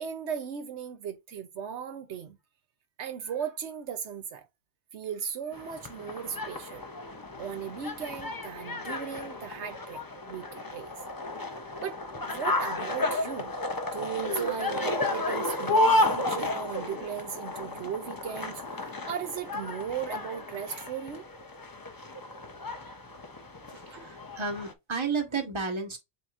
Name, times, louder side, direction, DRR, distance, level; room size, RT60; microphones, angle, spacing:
voice 1, 0.0-2.4 3.0-4.5 4.9-6.9 7.4-10.0 10.3-10.9 11.8-12.0 12.2-13.5 13.9-21.3 23.9-24.1, right 8 dB, 80° right, 1.0 m, -37 dB
sound 1, 5.5-24.7, left 2 dB, 25° left, 0.5 m, -32 dB
voice 2, 23.7-26.0, right 4 dB, 25° right, 1.2 m, -32 dB
7.7 x 2.8 x 2.5 m
omnidirectional pair, 1.2 m